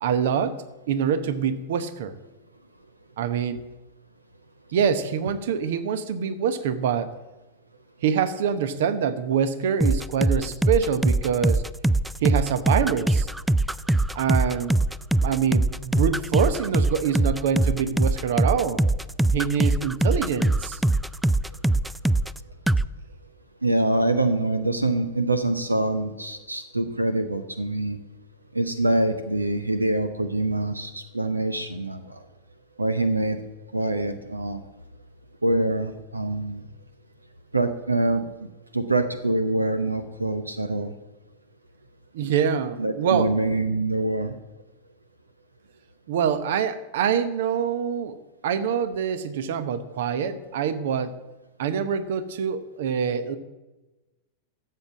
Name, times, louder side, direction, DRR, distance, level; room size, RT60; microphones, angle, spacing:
voice 1, 0.0-2.2 3.2-3.6 4.7-7.1 8.0-11.6 12.2-13.3 14.1-14.8 15.2-18.8 19.3-20.8 42.1-43.3 46.1-48.2 48.4-51.2 51.6-53.4, right 7 dB, 55° right, 13 dB, 1.0 m, -25 dB
sound 1, 9.8-22.4 22.7-22.9, right 2 dB, 5° right, 0.3 m, -22 dB
voice 2, 23.6-28.0 28.5-32.2 32.8-33.4 33.7-34.6 35.4-36.7 37.5-38.5 38.7-40.9 42.8-44.3, right 2 dB, 85° right, 10 dB, 0.8 m, -25 dB
13.0 x 7.8 x 7.3 m, 1.1 s
figure-of-eight pair, 90°, 0 cm